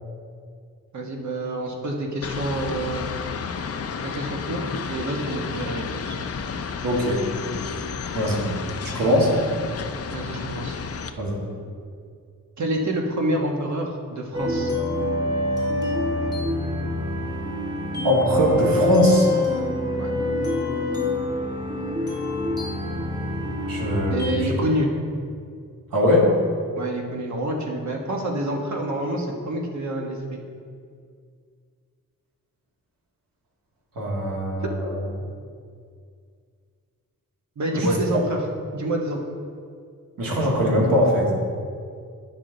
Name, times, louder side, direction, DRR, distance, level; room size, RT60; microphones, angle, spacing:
voice 1, 0.9-3.1 4.0-6.2 10.1-10.8 12.6-14.7 20.0-20.1 24.1-24.9 26.8-30.4 34.6-34.7 37.6-38.4 38.7-39.2, right 1 dB, 55° right, 1 dB, 1.3 m, -27 dB
sound 1, 2.2-11.1, left 5 dB, 45° left, 0.5 m, -32 dB
voice 2, 6.8-7.2 8.1-8.5 8.9-9.3 11.2-11.4 18.0-19.3 23.7-24.5 25.9-26.3 34.0-35.0 37.7-38.2 40.2-41.3, equal, 90° right, -3 dB, 2.0 m, -21 dB
sound 2, 14.3-24.3, left 2 dB, 10° right, 1.7 m, -26 dB
10.5 x 6.1 x 3.9 m, 2.2 s
wide cardioid pair, 140°, 33 cm